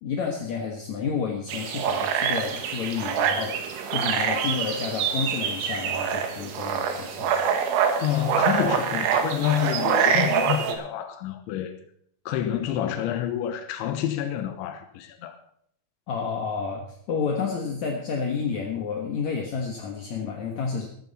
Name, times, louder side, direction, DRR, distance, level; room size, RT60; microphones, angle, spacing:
voice 1, 0.0-7.3 16.1-20.9, left 5 dB, 60° left, 1 dB, 1.9 m, -30 dB
sound 1, 1.5-10.7, right 7 dB, 80° right, 3.9 m, -25 dB
voice 2, 8.0-11.8 12.3-15.4, left 11 dB, 80° left, 7 dB, 3.5 m, -28 dB
15.0 x 14.5 x 4.1 m, 0.66 s
omnidirectional pair, 5.2 m